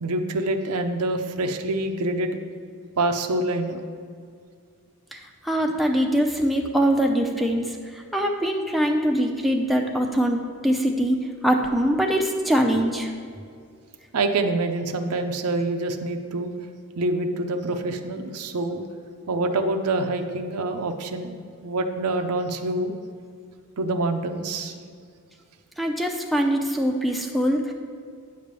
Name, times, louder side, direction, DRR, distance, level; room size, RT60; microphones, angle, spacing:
voice 1, 0.0-2.3 3.0-3.8 14.1-16.5 17.0-18.8 19.3-22.9 23.8-24.8, right 2 dB, 80° right, 6 dB, 0.6 m, -26 dB
voice 2, 5.1-10.4 10.6-11.2 11.4-13.1 25.8-27.7, equal, ahead, 2 dB, 0.5 m, -23 dB
9.4 x 3.3 x 6.8 m, 2.2 s
head